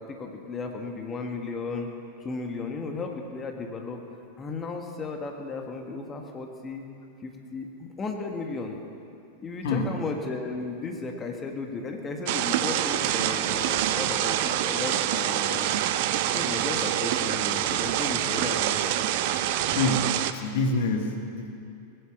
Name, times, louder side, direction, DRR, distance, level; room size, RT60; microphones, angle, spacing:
voice 1, 0.0-1.9 2.2-4.0 4.4-6.9 7.2-8.8 9.4-15.7 16.3-18.9, left 3 dB, 20° left, 3 dB, 1.6 m, -35 dB
sound 1, 12.3-20.3, right 12 dB, 50° right, 0.7 m, -26 dB
voice 2, 19.7-20.1 20.3-21.6, left 3 dB, 55° left, 4 dB, 1.6 m, -26 dB
19.5 x 10.5 x 7.2 m, 2.5 s
figure-of-eight pair, 90°, 0 cm